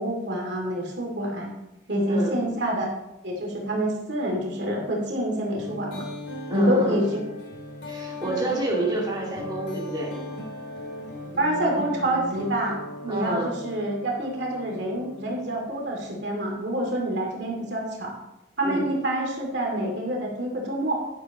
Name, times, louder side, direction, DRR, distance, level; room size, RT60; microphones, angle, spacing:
voice 1, 0.0-1.5 1.9-2.9 3.2-6.1 6.5-7.2 11.4-18.1 18.6-20.9, right 1 dB, 65° right, -1 dB, 2.5 m, -27 dB
sound 1, 5.6-16.1, equal, 80° left, 3.1 m, -37 dB
voice 2, 6.5-7.0 7.9-10.2 13.1-13.6 18.6-18.9, right 2 dB, 25° right, -4 dB, 2.2 m, -28 dB
10.5 x 10.0 x 3.0 m, 0.89 s
head